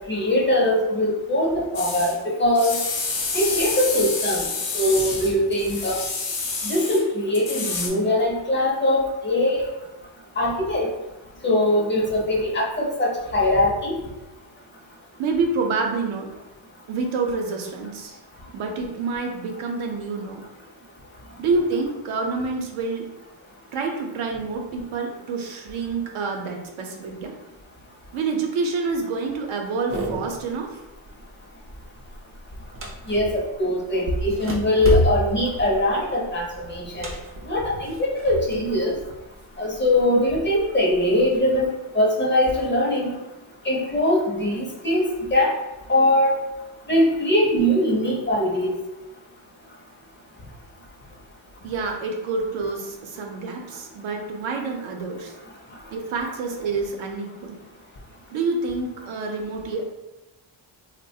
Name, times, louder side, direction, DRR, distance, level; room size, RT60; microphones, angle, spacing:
voice 1, 0.1-2.8 3.3-4.4 4.7-6.0 6.6-9.7 10.4-10.9 11.4-13.9 33.1-37.1 37.5-39.0 39.6-41.7 41.9-43.2 43.6-45.5 45.9-46.3 46.9-48.7, left 1 dB, 25° left, -2 dB, 0.5 m, -21 dB
sound 1, 1.7-2.2 2.5-7.0 7.3-7.9, left 4 dB, 70° left, 0.8 m, -28 dB
voice 2, 15.2-16.3 16.9-18.2 18.5-20.4 21.4-23.0 23.7-27.3 28.1-30.8 51.6-55.3 55.9-57.6 58.3-59.8, right 4 dB, 75° right, 2 dB, 0.7 m, -27 dB
sound 2, 29.9-30.5 30.9-31.3 31.6-33.5 34.0-38.7 39.0-40.0 40.6-41.4, equal, 30° right, 0.4 m, -29 dB
3.1 x 2.1 x 2.6 m, 1.0 s
cardioid pair, 120°, 48 cm